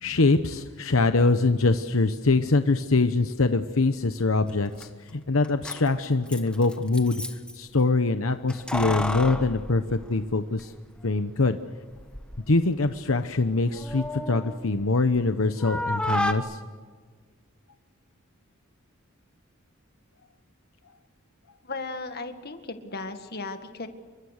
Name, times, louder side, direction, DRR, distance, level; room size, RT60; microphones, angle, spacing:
voice 1, 0.0-7.2 7.5-10.7 11.0-11.6 12.5-16.6, left 3 dB, 75° left, 9 dB, 1.0 m, -23 dB
Keys jangling, 4.5-4.6 4.8-4.9 5.4-7.6 8.5-10.6 11.0-11.1 11.9-12.5 12.8-15.3 15.6-16.3, left 1 dB, 5° left, 1.3 m, -32 dB
voice 2, 21.6-23.9, left 3 dB, 50° left, 7 dB, 1.9 m, -36 dB
28.5 x 24.0 x 6.6 m, 1.5 s
head